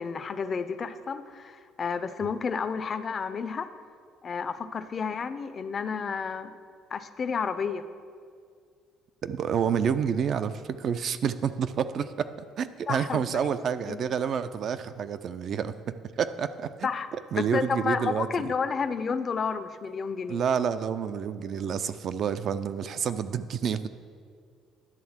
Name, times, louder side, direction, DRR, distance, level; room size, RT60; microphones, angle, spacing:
voice 1, 0.0-3.7 4.2-6.6 6.9-7.9 12.9-13.4 13.9-14.0 16.8-20.4, left 5 dB, 35° left, 11 dB, 0.4 m, -31 dB
voice 2, 9.2-15.7 16.2-16.9 17.3-18.5 20.3-23.9, right 7 dB, 50° right, 12 dB, 0.3 m, -29 dB
10.5 x 3.5 x 7.2 m, 2.2 s
cardioid pair, 115°, 0 cm